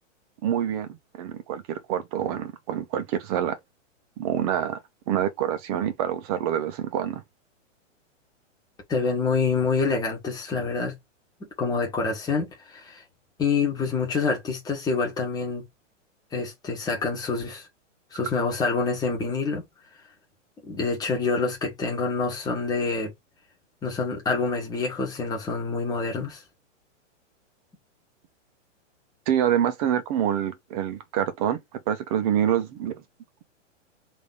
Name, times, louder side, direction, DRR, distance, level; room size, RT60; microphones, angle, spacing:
voice 1, 0.4-0.9 1.1-3.6 4.2-4.8 5.1-7.2 29.3-31.6 31.9-32.9, right 10 dB, 30° right, 0.9 m, -26 dB
voice 2, 8.9-11.0 11.4-13.0 13.4-15.6 16.3-17.6 18.1-19.6 20.6-23.1 23.8-26.4, left 4 dB, 10° left, 1.5 m, -27 dB
3.5 x 3.0 x 3.9 m
hypercardioid pair, 155°, 38 cm